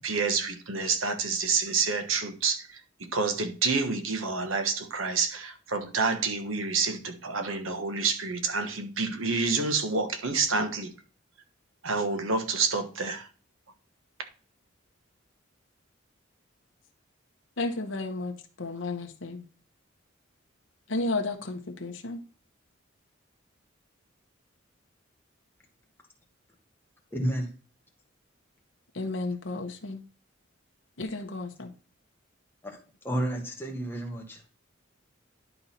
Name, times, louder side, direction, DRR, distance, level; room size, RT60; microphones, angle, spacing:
voice 1, 0.0-2.7 3.1-10.9 11.8-13.3, right 4 dB, 85° right, 1.3 m, -28 dB
voice 2, 17.6-19.4 20.9-22.2 28.9-30.0 31.0-31.7, left 2 dB, 70° left, 1.1 m, -33 dB
voice 3, 27.1-27.5 32.6-32.8 33.0-34.4, right 1 dB, 10° left, 1.5 m, -31 dB
11.0 x 4.0 x 4.3 m
head